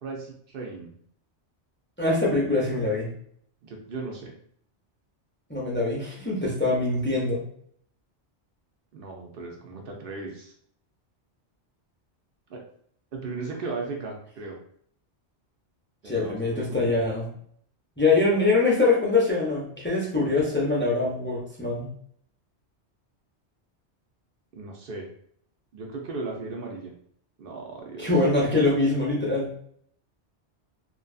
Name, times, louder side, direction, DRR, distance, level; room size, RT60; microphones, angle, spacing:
voice 1, 0.0-0.9 3.6-4.3 8.9-10.5 12.5-12.6 13.1-14.6 16.0-17.0 24.5-25.1 25.7-26.9 27.4-28.1, right 3 dB, 60° right, 1 dB, 0.7 m, -36 dB
voice 2, 2.0-3.1 5.5-7.4 16.0-17.3 18.0-21.9 28.0-29.5, left 3 dB, 20° left, -5 dB, 0.3 m, -23 dB
2.5 x 2.2 x 2.3 m, 0.63 s
omnidirectional pair, 1.2 m